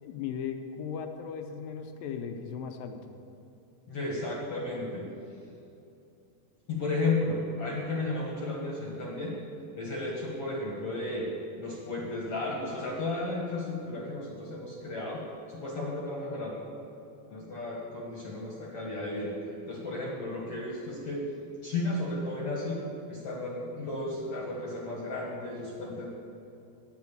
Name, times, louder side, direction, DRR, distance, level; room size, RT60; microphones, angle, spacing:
voice 1, 0.0-3.0, left 7 dB, 75° left, 6 dB, 2.4 m, -37 dB
voice 2, 3.9-5.1 6.7-9.3 9.8-11.3 11.6-15.2 15.5-16.6 17.3-21.2 21.6-22.8 23.1-26.1, left 2 dB, 55° left, -3 dB, 1.8 m, -33 dB
10.5 x 9.3 x 7.2 m, 2.8 s
omnidirectional pair, 4.5 m